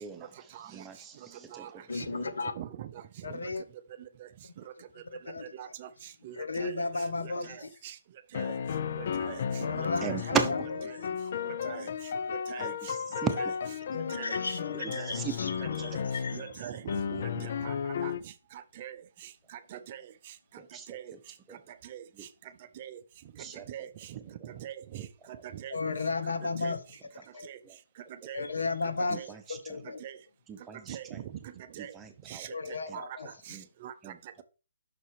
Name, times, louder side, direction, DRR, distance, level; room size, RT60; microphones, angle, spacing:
voice 1, 0.7-1.7 10.0-10.5 12.6-13.3 13.6-13.7 14.7-15.3 15.6-15.7 16.0-16.1 17.1-17.2 20.6-21.2 21.5-21.6 22.2-22.3 23.4-23.9 24.9-25.1 27.6-27.8 29.1-29.8 30.5-31.2 31.8-32.5 32.9-33.0 33.5-33.7 34.0-34.4, right 6 dB, 15° right, 0.9 m, -37 dB
voice 2, 1.9-2.5 3.2-3.6 5.3-5.4 6.4-7.7 9.6-10.4 11.3-11.7 13.9-16.4 25.7-26.8 27.3-27.5 28.3-29.2 29.5-30.0 32.5-33.3, left 3 dB, 80° left, 0.9 m, -34 dB
voice 3, 2.6-2.9 3.3-3.4 5.5-5.9 6.2-6.7 7.2-7.9 8.3-8.5 9.0-9.4 9.7-10.4 11.6-11.9 12.5-12.7 13.4-13.5 14.1-14.3 14.7-15.1 15.6-15.9 16.3-16.8 17.2-17.7 18.0-18.1 18.8-19.0 19.7-20.0 20.9-21.1 21.9-22.0 22.8-23.0 23.7-23.9 24.4-25.8 26.6-26.7 27.4-27.6 28.2-28.4 29.0-29.3 30.0-30.2 30.9-31.3 31.8-31.9 32.3-33.0 33.5-33.9, right 11 dB, 40° right, 0.5 m, -42 dB
sound 1, 6.6-7.6 8.3-16.6 16.9-18.2, left 7 dB, 55° left, 0.4 m, -34 dB
6.0 x 4.2 x 4.6 m
hypercardioid pair, 145°, 0 cm